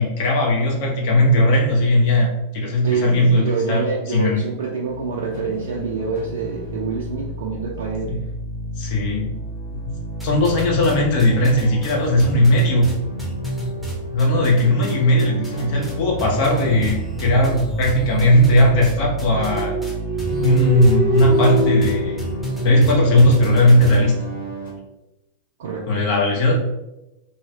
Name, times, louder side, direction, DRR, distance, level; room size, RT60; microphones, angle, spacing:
voice 1, 0.0-3.8 4.1-4.4 8.1-8.2 8.8-9.3 9.8-9.9 10.2-12.9 14.1-19.8 20.4-22.2 22.6-24.2 25.9-26.5, left 1 dB, 45° left, -1 dB, 0.6 m, -17 dB
voice 2, 2.8-8.2 25.6-25.9, right 5 dB, 60° right, -2 dB, 0.4 m, -26 dB
sound 1, 4.9-24.7, left 1 dB, 70° left, 1.3 m, -31 dB
sound 2, 10.2-10.9 11.2-14.9 15.2-24.0, right 2 dB, ahead, 0.8 m, -29 dB
sound 3, 19.3-23.1, equal, 25° left, 1.5 m, -24 dB
2.8 x 2.7 x 2.6 m, 0.95 s
figure-of-eight pair, 90°, 0 cm